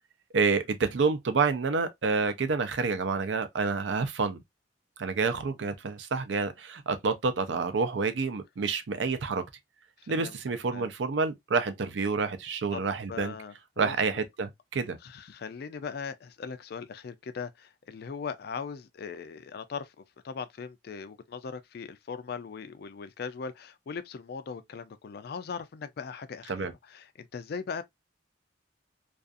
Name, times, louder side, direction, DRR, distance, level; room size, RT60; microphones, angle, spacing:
voice 1, 0.3-4.4 5.0-9.4 10.1-13.3 13.8-15.0 26.5-26.7, right 4 dB, 70° right, 0.5 m, -28 dB
voice 2, 10.0-10.3 10.7-10.9 12.7-12.8 13.1-14.2 15.0-27.8, left 5 dB, 55° left, 0.3 m, -39 dB
2.4 x 2.4 x 2.4 m
head